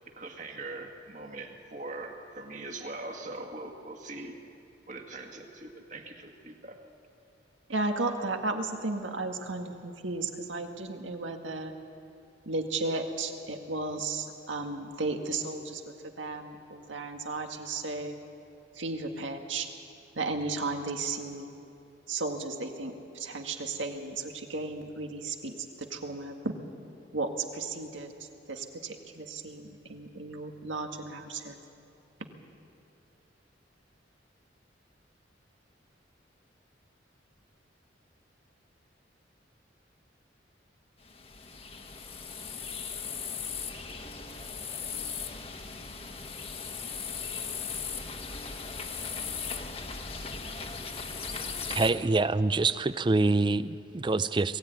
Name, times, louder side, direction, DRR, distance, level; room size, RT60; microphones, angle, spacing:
voice 1, 0.2-4.4 4.9-6.8 51.3-51.8, right 2 dB, 40° right, 3 dB, 2.0 m, -42 dB
voice 2, 7.7-11.7 12.5-18.2 18.7-19.7 20.2-21.5 22.1-26.5 27.1-31.6 52.7-52.8, right 3 dB, 90° right, 4 dB, 1.9 m, -34 dB
sound 1, 41.0-51.9, left 5 dB, 30° left, 1.3 m, -38 dB
voice 3, 51.7-54.6, right 3 dB, 25° right, 15 dB, 0.4 m, -26 dB
21.5 x 15.5 x 9.4 m, 2.6 s
head